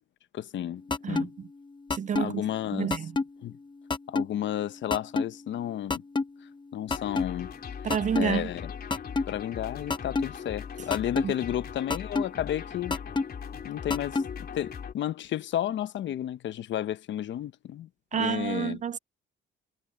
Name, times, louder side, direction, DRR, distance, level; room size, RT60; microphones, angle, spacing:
voice 1, 0.3-0.8 1.1-1.3 2.2-3.0 3.4-3.6 4.1-6.0 6.7-7.5 8.2-8.7 9.3-13.0 13.6-14.2 14.5-18.8, left 11 dB, 70° left, 0.9 m, -32 dB
sound 1, 0.9-1.2 1.9-2.3 2.9-3.2 3.9-4.3 4.9-5.3 5.9-6.3 6.9-7.2 7.9-8.3 8.9-9.2 9.9-10.3 10.9-11.3 11.9-12.3 12.9-13.2 13.9-14.3, left 3 dB, 25° left, 1.0 m, -26 dB
voice 2, 1.9-2.4 2.7-3.1 7.8-8.5 11.2-11.3 18.1-19.0, right 8 dB, 40° right, 0.4 m, -29 dB
sound 2, 6.9-14.9, left 7 dB, 50° left, 3.5 m, -40 dB
cardioid pair, 90°, 20 cm